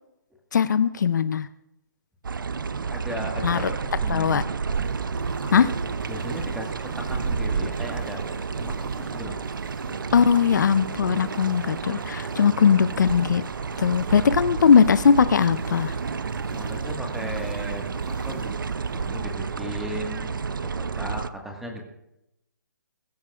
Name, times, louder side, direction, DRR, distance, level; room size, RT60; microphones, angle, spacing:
voice 1, 0.5-1.5 3.4-3.6 4.1-4.4 5.5-5.7 10.1-13.4 13.8-15.9, left 7 dB, 60° left, 14 dB, 0.6 m, -19 dB
sound 1, 2.2-21.3, right 5 dB, 85° right, 0.6 m, -30 dB
voice 2, 2.9-4.4 5.4-5.6 6.1-8.2 8.6-9.4 16.5-18.6 18.9-21.8, equal, 5° right, 1 dB, 1.6 m, -36 dB
sound 2, 4.7-20.1, right 3 dB, 40° right, 5.3 m, -45 dB
21.5 x 13.0 x 2.4 m, 0.87 s
hypercardioid pair, 155°, 11 cm